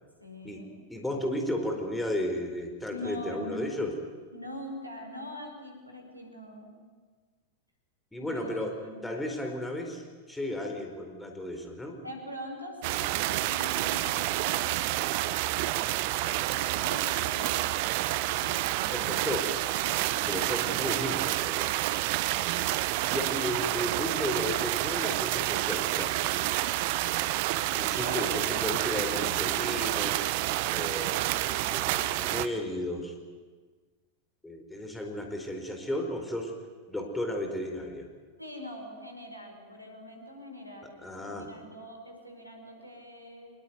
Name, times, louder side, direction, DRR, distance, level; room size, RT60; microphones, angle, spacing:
voice 1, 0.2-0.7 2.9-3.8 4.3-6.7 8.2-9.1 12.0-14.7 15.0-15.7 16.3-19.2 19.8-20.8 28.0-28.6 38.4-43.5, left 1 dB, 90° right, 3 dB, 5.0 m, -43 dB
voice 2, 0.9-3.9 8.1-8.8 9.0-12.0 18.9-19.6 20.3-21.9 23.1-26.2 27.7-30.3 30.7-33.1 34.4-36.5 36.9-38.1 41.0-41.5, left 1 dB, 5° left, 3 dB, 4.3 m, -34 dB
sound 1, 12.8-32.5, right 16 dB, 50° right, 1.0 m, -29 dB
25.5 x 21.0 x 9.5 m, 1.4 s
figure-of-eight pair, 90°, 0 cm